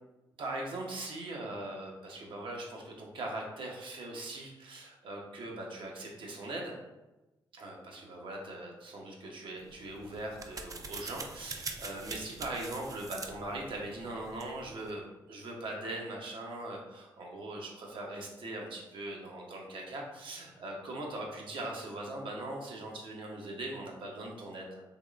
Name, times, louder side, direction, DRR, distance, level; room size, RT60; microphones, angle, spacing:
voice 1, 0.4-6.7 7.5-24.8, right 2 dB, 65° right, -1 dB, 0.8 m, -40 dB
sound 1, 9.6-14.9, right 4 dB, 40° right, 0.4 m, -45 dB
3.5 x 3.0 x 2.4 m, 1.1 s
supercardioid pair, 55°, 9 cm